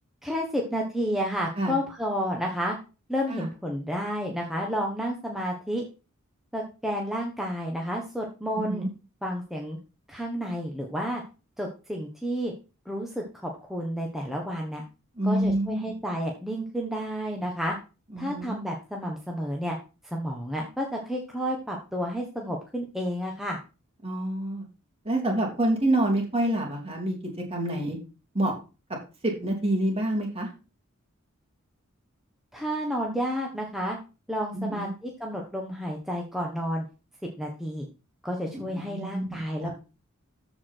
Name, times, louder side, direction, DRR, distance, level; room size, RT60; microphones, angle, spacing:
voice 1, 0.2-2.8 3.1-5.8 6.5-8.8 9.2-9.8 10.1-11.2 11.6-12.5 12.8-14.8 15.2-17.8 18.2-19.8 20.0-23.6 32.5-34.0 34.3-36.8 37.4-37.9 38.2-39.7, equal, ahead, -1 dB, 1.4 m, -31 dB
voice 2, 8.6-8.9 15.2-15.8 18.1-18.6 24.0-24.6 25.0-27.1 27.5-28.0 28.3-28.5 29.2-30.5 34.5-34.9 38.4-39.7, right 1 dB, 30° right, 1 dB, 3.2 m, -27 dB
14.0 x 5.0 x 4.6 m, 0.33 s
head